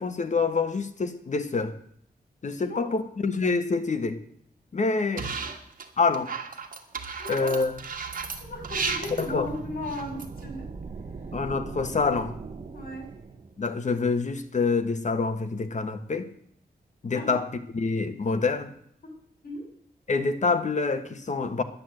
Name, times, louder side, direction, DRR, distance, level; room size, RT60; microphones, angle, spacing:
voice 1, 0.0-1.7 2.4-4.2 4.7-5.3 6.0-6.3 7.3-7.8 9.2-9.5 11.3-12.3 13.6-16.3 17.0-17.5 17.7-18.7 20.1-21.6, left 4 dB, 50° left, 8 dB, 1.3 m, -26 dB
voice 2, 2.5-3.0 5.5-5.6 7.2-7.6 8.4-10.7 12.7-13.1 17.1-17.4 19.4-19.6, left 1 dB, 70° left, 2 dB, 5.5 m, -36 dB
sound 1, 5.2-5.8 6.1-10.4, right 5 dB, 60° right, 1.7 m, -34 dB
sound 2, 7.2-13.7, right 4 dB, 40° right, 1.1 m, -41 dB
10.5 x 10.5 x 7.8 m, 0.66 s
wide cardioid pair, 120°, 16 cm